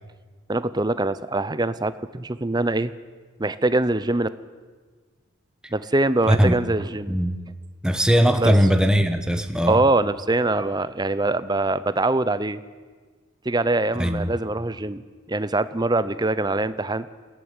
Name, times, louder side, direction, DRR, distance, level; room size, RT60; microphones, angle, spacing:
voice 1, 0.5-2.9 3.4-4.3 5.7-7.2 8.4-8.5 9.7-12.6 13.4-15.0 15.3-17.1, right 2 dB, 20° right, 14 dB, 0.7 m, -23 dB
voice 2, 7.1-7.4 7.8-9.8 13.9-14.3, equal, 5° right, 7 dB, 1.2 m, -19 dB
21.0 x 16.5 x 9.7 m, 1.5 s
head